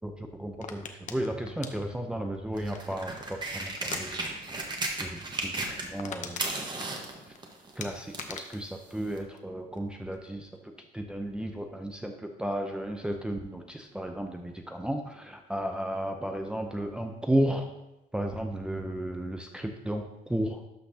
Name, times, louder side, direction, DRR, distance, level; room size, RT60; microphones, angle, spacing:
voice 1, 0.0-4.3 5.0-6.5 7.8-10.5 10.9-17.7 18.1-20.6, right 1 dB, 5° right, 3 dB, 0.6 m, -33 dB
sound 1, 0.6-3.2 3.8-4.0 4.3-4.6 4.8-4.9 5.4-5.5 5.7-7.4 7.8-9.8 10.1-10.6, left 6 dB, 45° left, 0.8 m, -42 dB
sound 2, 2.5-6.1 6.3-8.4 9.2-9.3, right 2 dB, 25° right, 1.3 m, -35 dB
12.0 x 5.8 x 2.8 m, 0.92 s
cardioid pair, 110°, 17 cm